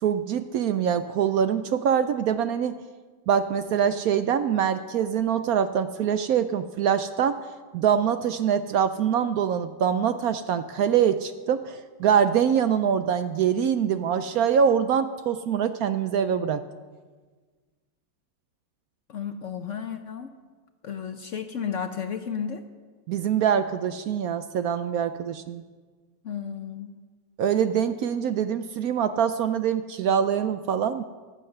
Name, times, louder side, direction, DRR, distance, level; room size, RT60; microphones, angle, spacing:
voice 1, 0.0-2.8 3.3-7.4 7.7-16.6 23.1-25.6 27.4-31.0, right 8 dB, 70° right, 11 dB, 0.9 m, -24 dB
voice 2, 19.1-20.3 20.8-22.6 26.2-26.9, left 7 dB, 60° left, 8 dB, 0.8 m, -33 dB
15.0 x 10.5 x 6.6 m, 1.4 s
omnidirectional pair, 1.9 m